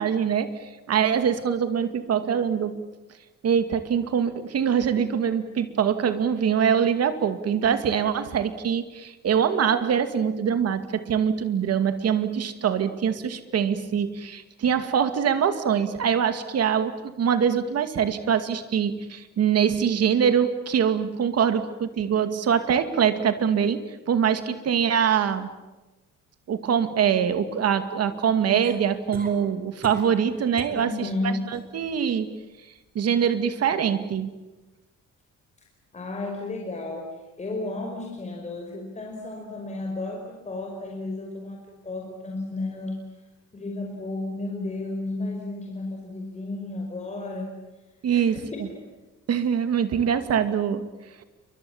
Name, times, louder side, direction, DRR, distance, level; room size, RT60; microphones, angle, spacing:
voice 1, 0.0-2.9 3.4-25.5 26.5-34.3 48.0-48.7 49.3-50.9 51.2-51.3, right 8 dB, 55° right, 9 dB, 2.4 m, -24 dB
sound 1, 28.6-29.4 29.8-30.2 30.6-30.8 31.3-31.7 33.5-33.6, right 3 dB, 30° right, 4.6 m, -40 dB
voice 2, 30.7-31.4 35.9-37.1 37.4-43.0 43.5-47.5 48.1-48.7, left 2 dB, 25° left, 0 dB, 5.1 m, -33 dB
29.5 x 24.5 x 7.3 m, 1.1 s
cardioid pair, 150°, 30 cm